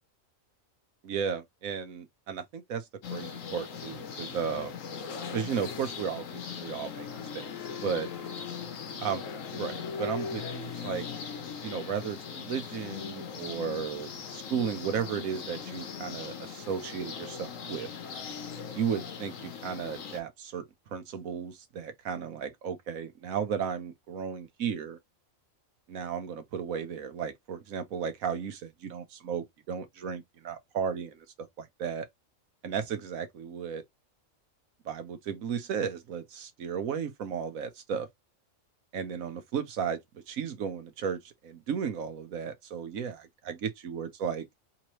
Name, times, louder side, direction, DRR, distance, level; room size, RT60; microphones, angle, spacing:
voice 1, 1.0-4.7 5.3-7.1 7.3-7.5 7.8-8.1 9.0-9.2 9.5-11.0 11.6-17.9 18.7-25.0 25.9-31.2 31.6-32.1 32.6-33.8 34.8-38.1 38.9-40.0 40.3-44.4, right 7 dB, 85° right, 1.3 m, -34 dB
sound 1, 3.0-20.2, left 6 dB, 75° left, 1.2 m, -39 dB
3.6 x 3.0 x 3.0 m
omnidirectional pair, 1.4 m